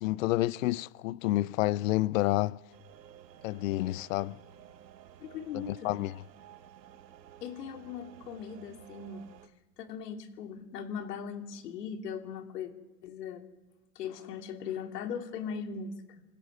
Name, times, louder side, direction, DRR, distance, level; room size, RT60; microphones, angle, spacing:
voice 1, 0.0-2.6 3.4-4.4 5.5-6.2, left 17 dB, 55° left, 0.6 m, -29 dB
sound 1, 2.7-9.5, right 10 dB, 85° right, 1.6 m, -54 dB
voice 2, 5.2-6.0 7.4-9.3 9.8-12.7 13.0-13.4 13.9-16.2, left 7 dB, 75° left, 2.8 m, -39 dB
27.0 x 16.5 x 6.4 m
supercardioid pair, 140°, 48 cm